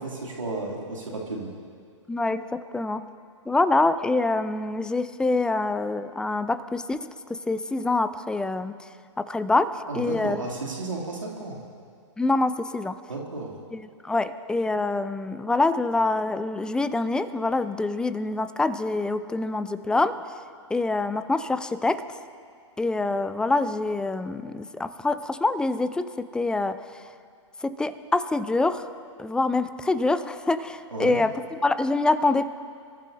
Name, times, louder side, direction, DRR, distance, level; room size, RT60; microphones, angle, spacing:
voice 1, 0.0-1.5 9.9-11.6 13.1-13.5 30.9-31.2, right 3 dB, 85° right, -2 dB, 2.7 m, -33 dB
voice 2, 2.1-3.0 3.5-8.7 9.2-10.4 12.2-13.0 13.7-20.2 20.7-22.0 22.8-26.8 27.6-28.9 29.2-32.5, left 2 dB, 5° left, 12 dB, 0.4 m, -25 dB
28.0 x 14.5 x 2.7 m, 2.2 s
hypercardioid pair, 115°, 16 cm